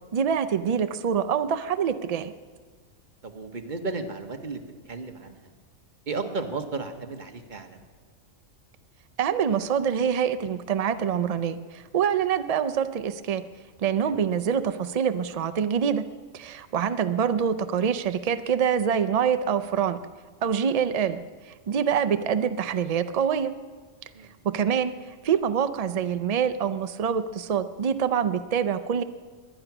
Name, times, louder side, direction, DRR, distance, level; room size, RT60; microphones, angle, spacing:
voice 1, 0.1-2.3 9.2-13.4 13.8-16.0 16.3-20.0 20.4-23.5 24.4-24.9 25.2-29.0, right 7 dB, 80° right, 11 dB, 0.3 m, -25 dB
voice 2, 3.2-5.4 6.1-7.8 13.9-14.1 24.1-24.3, right 3 dB, 40° right, 5 dB, 1.3 m, -34 dB
21.5 x 10.0 x 6.0 m, 1.5 s
omnidirectional pair, 1.4 m